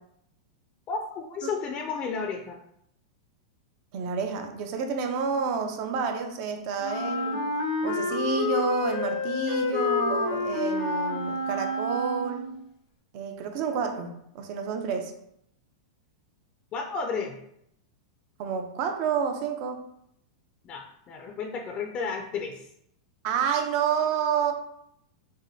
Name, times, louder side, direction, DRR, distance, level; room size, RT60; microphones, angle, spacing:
voice 1, 0.9-2.6 16.7-17.4 20.6-22.7, left 5 dB, 35° left, 3 dB, 0.5 m, -32 dB
voice 2, 3.9-7.5 7.8-12.5 13.1-15.1 18.4-19.9 23.2-24.5, right 6 dB, 50° right, 5 dB, 0.6 m, -29 dB
Wind instrument woodwind instrument, 6.8-12.6, left 3 dB, 80° left, 0.8 m, -28 dB
6.1 x 2.2 x 2.7 m, 0.75 s
hypercardioid pair, 130°, 3 cm